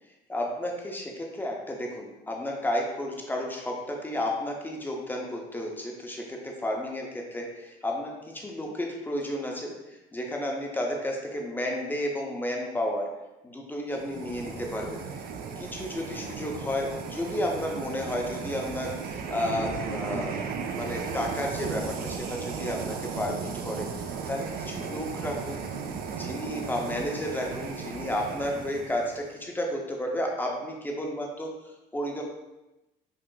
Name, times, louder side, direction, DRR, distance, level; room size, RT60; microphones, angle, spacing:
voice 1, 0.3-13.1 13.4-15.2 15.6-25.6 26.1-32.2, left 1 dB, 10° left, 0 dB, 0.5 m, -32 dB
sound 1, 13.9-29.3, right 6 dB, 60° right, 0.4 m, -36 dB
3.7 x 2.4 x 2.3 m, 0.99 s
cardioid pair, 110°, 17 cm